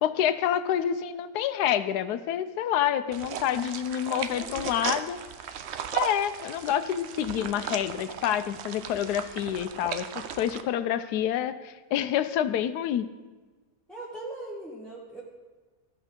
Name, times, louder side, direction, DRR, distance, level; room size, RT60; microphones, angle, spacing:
voice 1, 0.0-5.2 5.9-10.1 10.3-13.1, left 10 dB, 90° left, 12 dB, 1.1 m, -28 dB
sound 1, 3.1-10.6, right 8 dB, 65° right, 0.7 m, -36 dB
voice 2, 4.1-4.8 13.9-15.2, right 2 dB, ahead, -6 dB, 1.0 m, -40 dB
14.0 x 5.4 x 5.1 m, 1.3 s
omnidirectional pair, 1.7 m